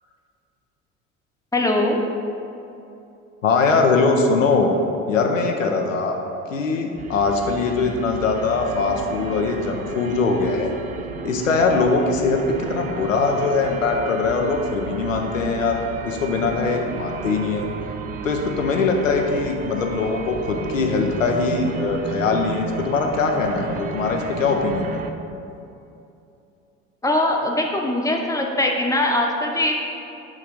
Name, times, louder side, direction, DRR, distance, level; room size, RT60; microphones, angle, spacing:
voice 1, 1.5-2.0 27.0-29.7, left 1 dB, 10° left, 1 dB, 0.7 m, -21 dB
voice 2, 3.4-4.7 5.1-6.2 6.5-10.7 11.2-17.7 18.2-25.0, left 4 dB, 90° left, 2 dB, 0.6 m, -21 dB
sound 1, 7.0-25.1, right 5 dB, 25° right, 0.3 m, -33 dB
7.1 x 3.3 x 5.0 m, 2.7 s
figure-of-eight pair, 60°, 38 cm